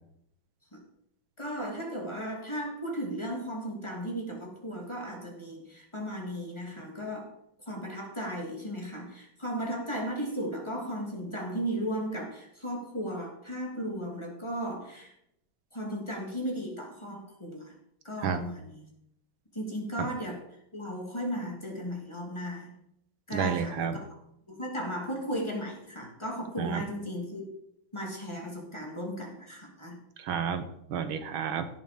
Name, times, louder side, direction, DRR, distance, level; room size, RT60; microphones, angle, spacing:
voice 1, 1.4-7.3 7.7-15.1 15.7-17.7 18.0-18.9 19.5-20.4 20.7-22.7 23.3-24.1 24.5-27.5 27.9-30.0, equal, 15° left, 0 dB, 2.7 m, -35 dB
voice 2, 23.3-24.0 26.6-26.8 30.2-31.7, right 7 dB, 85° right, 10 dB, 1.9 m, -31 dB
16.5 x 6.9 x 5.2 m, 0.75 s
omnidirectional pair, 2.1 m